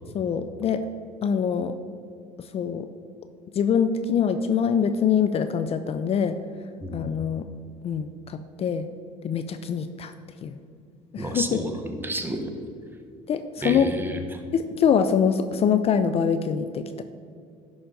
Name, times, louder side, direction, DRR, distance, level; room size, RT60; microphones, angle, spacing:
voice 1, 0.1-0.9 1.2-1.8 2.5-2.9 3.5-6.4 6.9-7.4 7.8-8.9 9.2-10.1 10.4-10.6 11.1-11.6 13.3-13.9 14.5-17.0, left 7 dB, 45° left, 10 dB, 0.4 m, -24 dB
voice 2, 11.2-12.5 13.6-14.4, right 1 dB, 15° right, 4 dB, 1.1 m, -31 dB
10.5 x 4.0 x 5.1 m, 2.3 s
hypercardioid pair, 75°, 15 cm